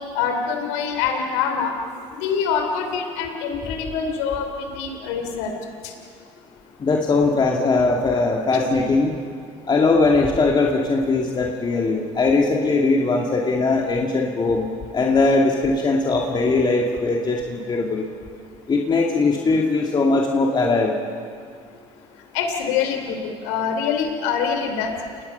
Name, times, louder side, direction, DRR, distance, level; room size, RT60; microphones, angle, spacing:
voice 1, 0.1-1.8 2.2-5.5 5.8-5.9 22.3-24.9, left 6 dB, 85° left, 4 dB, 3.3 m, -25 dB
voice 2, 6.8-9.1 9.7-18.0 18.7-20.9, left 3 dB, 30° left, -1 dB, 2.5 m, -20 dB
29.5 x 19.5 x 5.7 m, 2.3 s
supercardioid pair, 85°, 15 cm